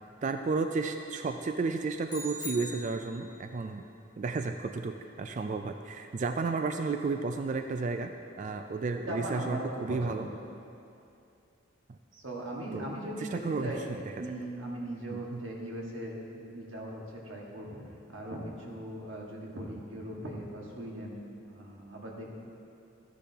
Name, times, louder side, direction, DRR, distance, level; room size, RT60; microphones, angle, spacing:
voice 1, 0.2-3.8 4.2-8.1 8.4-10.3 12.7-12.9 13.3-14.0 15.1-15.4, right 4 dB, 40° right, 6 dB, 0.3 m, -32 dB
sound 1, 2.1-3.4, left 1 dB, 20° left, 2.7 m, -42 dB
voice 2, 9.1-10.3 12.1-13.9 14.2-17.8 18.1-22.3, right 1 dB, 80° right, -2 dB, 1.7 m, -39 dB
13.5 x 10.0 x 2.9 m, 2.6 s
head